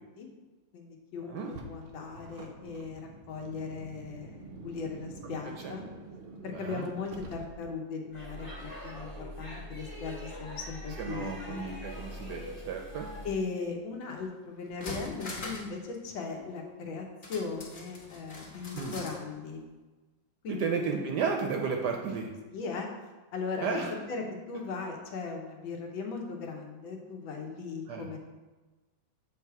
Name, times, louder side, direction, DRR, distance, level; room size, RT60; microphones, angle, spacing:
voice 1, 0.7-1.4 1.7-3.0 3.3-5.8 6.4-11.6 13.2-19.6 20.4-20.7 22.5-22.9 23.3-28.2, left 4 dB, 75° left, 2 dB, 1.6 m, -38 dB
Car, 1.4-7.9, right 2 dB, 85° right, 0.6 m, -47 dB
voice 2, 6.5-6.9 11.0-13.1 18.7-19.0 20.5-22.3 23.6-23.9 27.9-28.1, right 5 dB, 70° right, 2 dB, 1.0 m, -33 dB
Speech / Shout / Subway metro underground, 8.1-13.4, left 1 dB, 20° left, 1.1 m, -43 dB
sound 1, 14.2-14.3 14.6-15.8 16.0-16.1 17.2-19.2 19.5-19.6, left 2 dB, 40° left, 0.8 m, -42 dB
7.3 x 3.4 x 4.6 m, 1.2 s
omnidirectional pair, 2.2 m